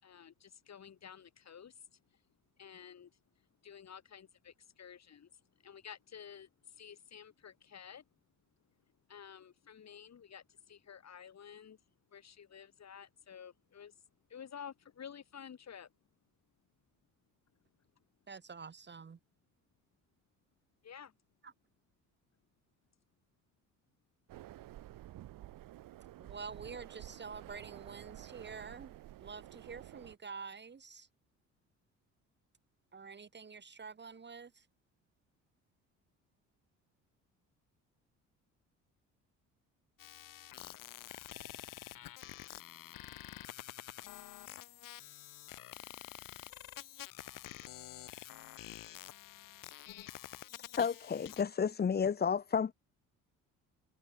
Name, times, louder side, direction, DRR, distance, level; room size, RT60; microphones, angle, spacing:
voice 1, 0.0-2.2 2.6-8.1 9.1-11.8 12.1-14.0 14.3-15.9 18.0-18.1 20.8-21.1, left 8 dB, 45° left, 4.9 m, -52 dB
voice 2, 18.3-19.2 21.4-21.5 26.2-31.1 32.9-34.6, right 5 dB, 30° right, 1.5 m, -48 dB
sound 1, 24.3-30.2, right 14 dB, 65° right, 3.2 m, -51 dB
sound 2, 40.0-51.4, left 14 dB, 60° left, 1.8 m, -48 dB
voice 3, 50.8-52.7, left 6 dB, 25° left, 0.9 m, -31 dB
hypercardioid pair, 60°, 36 cm